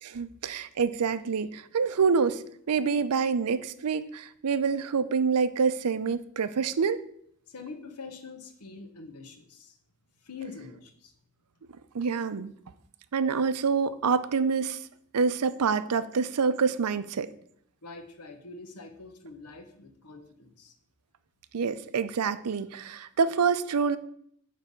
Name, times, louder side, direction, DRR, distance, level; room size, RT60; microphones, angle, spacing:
voice 1, 0.0-2.4 2.7-7.0 11.9-12.5 13.1-14.8 15.1-17.3 21.5-24.0, right 5 dB, 90° right, 13 dB, 0.5 m, -26 dB
voice 2, 7.5-9.8 10.2-11.1 17.8-20.7, left 4 dB, 85° left, 5 dB, 1.1 m, -44 dB
9.3 x 3.4 x 6.8 m, 0.68 s
head